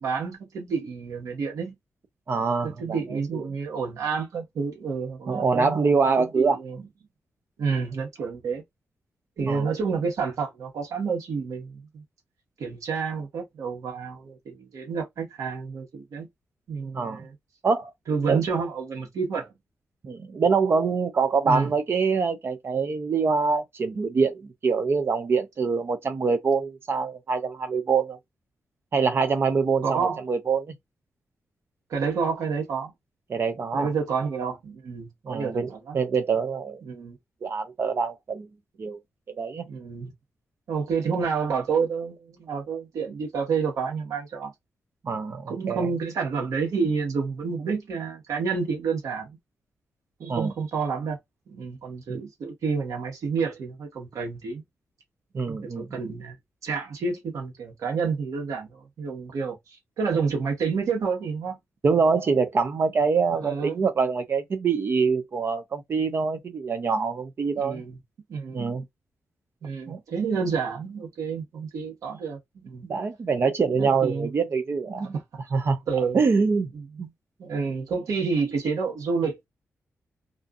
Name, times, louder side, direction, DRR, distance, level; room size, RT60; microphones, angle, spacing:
voice 1, 0.0-1.7 2.6-6.9 7.6-8.6 9.4-12.0 12.6-16.3 16.7-17.3 18.1-19.5 21.4-21.7 29.8-30.2 31.9-32.9 33.7-36.0 36.8-37.2 39.7-40.1 40.7-44.5 45.5-49.4 50.2-51.2 51.5-54.6 55.5-56.4 56.6-61.6 63.4-63.8 67.5-68.0 68.3-68.7 69.6-72.9 73.8-74.3 75.1-75.2 75.9-76.2 76.7-77.1 77.4-79.5, right 5 dB, 90° right, 1.2 m, -29 dB
voice 2, 2.3-3.4 5.3-6.6 9.5-9.7 16.9-17.2 17.6-17.9 18.3-18.4 20.0-28.2 28.9-30.7 33.3-33.9 35.3-35.7 35.9-36.8 37.4-38.5 38.8-39.0 39.4-39.6 45.0-45.9 50.3-50.5 52.1-52.2 55.3-55.9 61.8-67.8 68.5-68.8 69.9-70.0 72.8-75.1 75.5-75.8 76.1-76.7 77.0-77.1, right 5 dB, 45° right, 0.5 m, -25 dB
2.5 x 2.5 x 2.4 m
wide cardioid pair, 110°, 5 cm